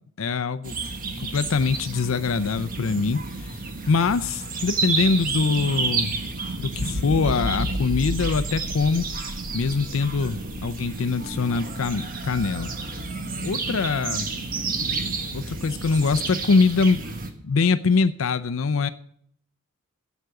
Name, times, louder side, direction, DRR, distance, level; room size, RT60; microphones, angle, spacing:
voice 1, 0.2-0.8 1.2-3.6 3.9-6.1 6.6-9.1 9.5-12.7 13.4-14.3 15.3-17.0 17.4-18.9, left 4 dB, 70° left, 12 dB, 0.5 m, -23 dB
sound 1, 0.6-17.3, right 4 dB, 45° right, 1.3 m, -31 dB
sound 2, 6.7-10.8 11.3-11.5, left 1 dB, 85° right, 2.1 m, -32 dB
8.3 x 8.1 x 7.7 m, 0.65 s
head